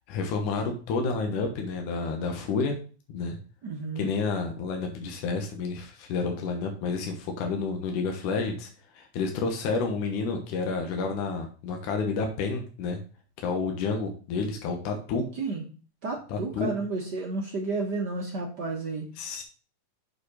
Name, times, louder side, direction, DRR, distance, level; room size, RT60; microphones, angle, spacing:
voice 1, 0.1-2.8 3.1-3.4 4.0-8.7 8.9-13.0 13.4-15.2 16.3-16.7 19.2-19.4, left 4 dB, 75° left, 2 dB, 2.7 m, -30 dB
voice 2, 3.6-4.1 15.3-15.6 16.0-19.0, right 3 dB, 60° right, 0 dB, 1.1 m, -31 dB
6.9 x 5.2 x 4.8 m, 0.37 s
omnidirectional pair, 3.7 m